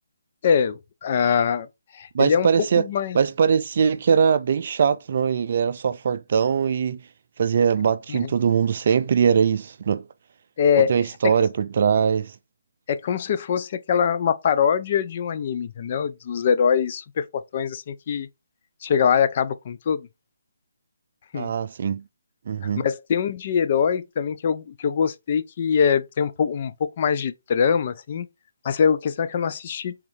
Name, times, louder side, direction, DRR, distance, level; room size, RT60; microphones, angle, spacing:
voice 1, 0.4-1.7 1.9-2.5 2.8-3.2 8.1-8.2 10.6-10.9 11.2-11.3 12.9-18.3 18.8-20.1 21.3-21.5 22.6-28.3 28.6-29.9, left 7 dB, 40° left, 0.5 m, -23 dB
voice 2, 2.1-2.8 3.1-7.0 7.4-10.0 10.8-12.3 21.3-22.0 22.5-22.8, right 7 dB, 50° right, 0.4 m, -21 dB
4.8 x 3.6 x 2.7 m
figure-of-eight pair, 150°, 0 cm